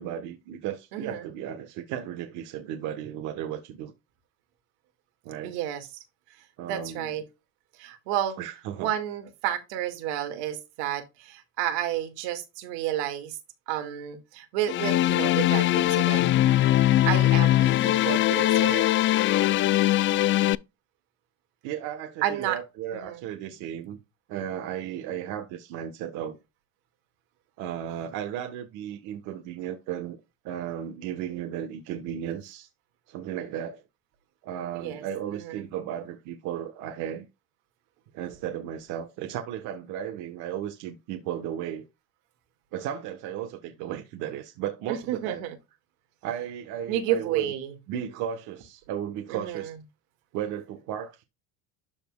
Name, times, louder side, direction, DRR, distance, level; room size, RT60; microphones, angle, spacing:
voice 1, 0.0-3.9 5.2-5.6 6.6-7.2 8.4-8.9 21.6-24.0 24.3-26.4 27.6-30.2 30.4-32.7 33.1-33.8 34.4-37.3 38.1-41.8 42.7-45.4 46.2-47.5 47.9-49.7 50.3-51.2, right 10 dB, 70° right, 1.3 m, -35 dB
voice 2, 0.9-1.3 5.4-5.9 6.7-7.2 7.8-8.4 8.8-13.4 13.7-16.3 17.0-18.9 22.2-22.6 22.9-23.2 34.7-35.0 35.3-35.5 44.9-45.6 46.9-47.7 49.3-49.7, right 11 dB, 90° right, 2.0 m, -31 dB
Background Strings, 14.7-20.6, left 14 dB, 40° left, 0.4 m, -21 dB
13.0 x 4.3 x 2.3 m
cardioid pair, 115°, 31 cm